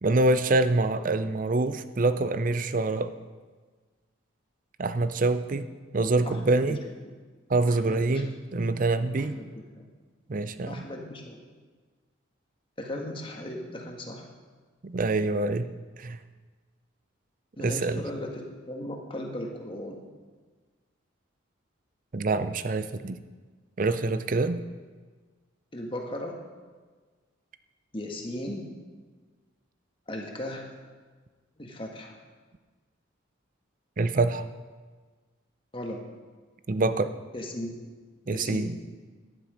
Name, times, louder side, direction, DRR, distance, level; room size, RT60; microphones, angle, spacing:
voice 1, 0.0-3.1 4.8-5.7 5.9-6.8 7.5-9.4 10.3-10.9 14.8-15.7 16.0-16.2 17.6-18.0 22.1-23.2 23.8-24.6 34.0-34.4 36.7-37.1 38.3-38.8, right 2 dB, 40° right, 12 dB, 0.5 m, -25 dB
voice 2, 6.2-6.8 7.6-8.2 9.2-9.9 10.7-11.4 12.8-14.2 17.6-20.0 25.7-26.4 27.9-28.7 30.1-30.7 31.6-32.2 35.7-36.0 37.3-37.8 38.3-38.7, left 1 dB, 25° left, 1 dB, 1.5 m, -37 dB
11.5 x 9.9 x 5.0 m, 1.4 s
head